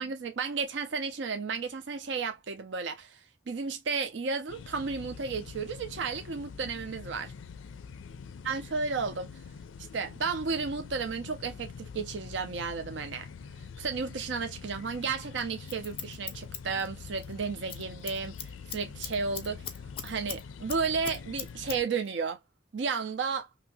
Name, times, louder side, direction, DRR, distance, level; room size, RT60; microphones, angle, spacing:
voice 1, 0.0-7.3 8.4-9.3 9.9-13.3 13.8-19.7 20.0-22.4 22.7-23.5, right 5 dB, 70° right, 0.5 m, -33 dB
sound 1, 4.5-21.8, left 6 dB, 90° left, 0.4 m, -45 dB
Scissors, 15.4-17.3 17.6-17.8 18.1-20.4 20.7-21.8 22.1-22.2, left 8 dB, 30° left, 0.4 m, -39 dB
2.8 x 2.7 x 2.6 m
head